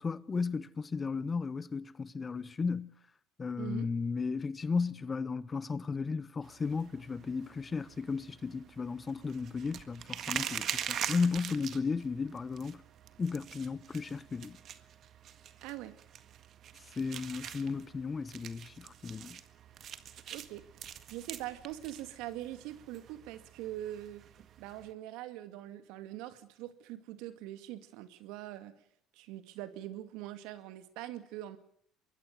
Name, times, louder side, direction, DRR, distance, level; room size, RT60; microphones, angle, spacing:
voice 1, 0.0-2.9 3.4-12.8 13.2-14.6 17.0-19.4, left 4 dB, 30° left, 1.2 m, -34 dB
voice 2, 3.6-3.9 15.6-15.9 20.3-20.7 21.1-24.2 24.6-28.7 29.2-31.6, right 14 dB, 70° right, 2.2 m, -43 dB
sound 1, 6.4-24.9, right 9 dB, 50° right, 1.8 m, -44 dB
24.0 x 21.5 x 6.7 m
hypercardioid pair, 75°, 0 cm